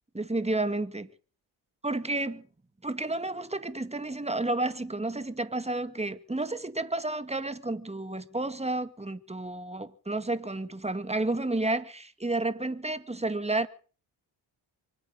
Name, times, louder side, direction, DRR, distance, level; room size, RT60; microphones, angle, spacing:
voice 1, 0.1-1.1 1.8-2.4 2.8-13.7, right 2 dB, 15° right, 2.0 m, -31 dB
25.0 x 8.7 x 6.4 m
hypercardioid pair, 45°, 49 cm